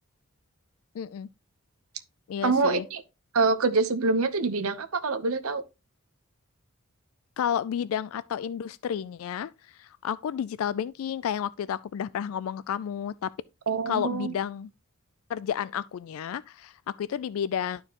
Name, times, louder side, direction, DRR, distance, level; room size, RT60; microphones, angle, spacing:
voice 1, 0.9-1.3 2.3-2.9 7.4-13.3 13.9-14.7 15.3-17.8, left 8 dB, 70° left, 0.3 m, -31 dB
voice 2, 2.4-3.0 3.3-5.6 13.7-14.3, right 4 dB, 75° right, 0.9 m, -25 dB
11.5 x 4.5 x 2.9 m
head